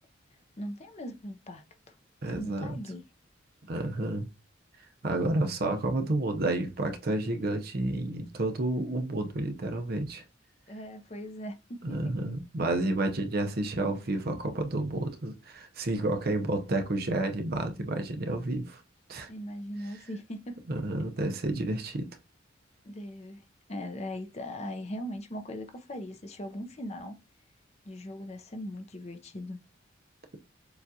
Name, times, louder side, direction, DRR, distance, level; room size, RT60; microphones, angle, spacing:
voice 1, 0.6-1.6 2.4-3.0 10.7-12.1 19.3-20.6 22.8-23.4 23.7-27.2 27.9-29.6, equal, 35° left, 0.6 m, -39 dB
voice 2, 2.2-2.8 3.6-4.3 5.0-10.2 11.8-18.8 19.1-19.3 20.7-22.1, right 2 dB, 50° right, 0.7 m, -30 dB
6.9 x 2.4 x 2.7 m
head